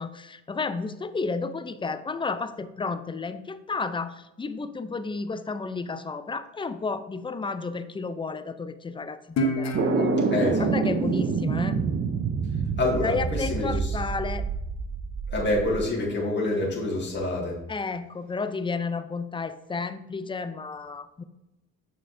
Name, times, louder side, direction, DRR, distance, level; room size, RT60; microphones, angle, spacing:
voice 1, 0.0-10.1 10.6-11.8 13.0-14.5 17.7-21.2, left 4 dB, 15° left, 12 dB, 0.4 m, -32 dB
Guitar, 9.4-12.6, left 2 dB, 60° left, 1.0 m, -31 dB
sound 1, 9.7-15.8, right 5 dB, 40° right, 0.6 m, -27 dB
voice 2, 10.3-10.7 12.8-14.0 15.3-17.6, left 2 dB, 35° left, -3 dB, 1.9 m, -27 dB
6.3 x 5.9 x 2.6 m, 0.93 s
cardioid pair, 90°, 30 cm